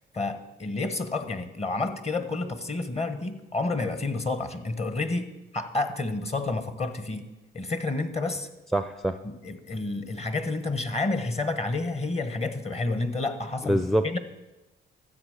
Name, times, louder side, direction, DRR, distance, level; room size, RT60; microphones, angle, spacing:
voice 1, 0.0-7.3 7.5-8.5 9.2-14.2, left 3 dB, 30° left, 10 dB, 1.3 m, -30 dB
voice 2, 8.7-9.2 13.6-14.2, right 1 dB, ahead, 10 dB, 0.5 m, -25 dB
13.0 x 7.9 x 6.6 m, 1.1 s
cardioid pair, 90°, 20 cm